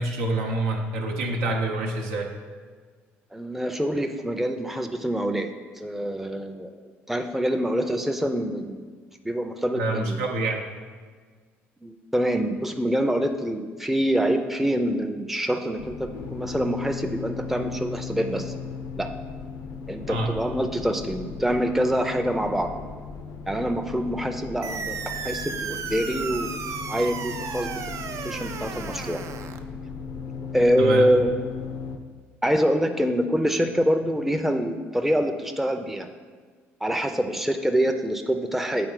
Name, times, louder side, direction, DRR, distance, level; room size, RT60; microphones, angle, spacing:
voice 1, 0.0-2.3 9.7-10.6 20.1-20.3 30.8-31.1, right 2 dB, 75° right, 1 dB, 0.8 m, -27 dB
voice 2, 3.3-5.5 5.8-6.7 7.1-8.9 9.2-10.2 11.8-18.5 19.0-19.1 19.9-22.7 23.5-29.2 30.5-31.3 32.4-36.1 36.8-38.9, equal, 5° right, 5 dB, 0.6 m, -25 dB
sound 1, 15.8-32.0, left 5 dB, 65° left, 0.6 m, -37 dB
sound 2, 24.6-29.6, right 6 dB, 50° right, 0.4 m, -34 dB
7.8 x 4.1 x 3.8 m, 1.5 s
hypercardioid pair, 55°, 7 cm